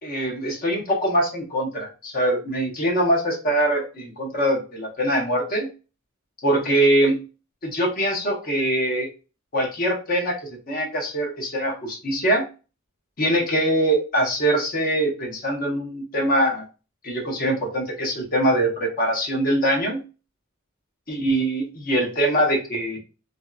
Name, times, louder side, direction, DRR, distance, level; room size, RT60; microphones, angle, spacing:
voice 1, 0.0-5.7 6.4-7.2 7.6-9.1 9.5-10.4 10.7-12.5 13.2-16.6 17.0-20.0 21.1-23.0, right 1 dB, 45° left, -1 dB, 0.9 m, -23 dB
2.6 x 2.3 x 2.4 m, 0.32 s
head